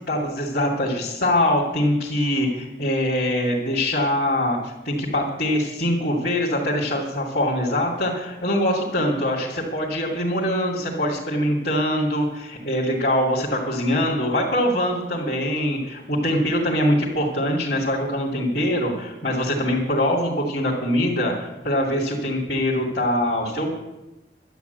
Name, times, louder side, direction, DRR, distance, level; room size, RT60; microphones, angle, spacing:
voice 1, 0.1-23.7, left 1 dB, 55° left, -4 dB, 2.6 m, -23 dB
12.0 x 9.2 x 8.1 m, 0.99 s
head